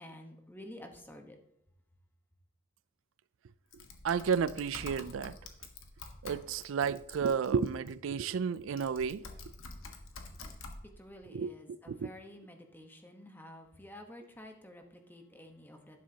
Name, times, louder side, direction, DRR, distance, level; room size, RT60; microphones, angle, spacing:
voice 1, 0.0-1.4 10.8-16.0, left 1 dB, 10° left, 1.1 m, -51 dB
Typing, 3.7-7.9 8.6-10.8, left 3 dB, 80° left, 1.4 m, -48 dB
voice 2, 4.0-5.3 6.2-9.3 11.3-12.1, right 6 dB, 75° right, 0.4 m, -32 dB
11.5 x 10.5 x 2.9 m
head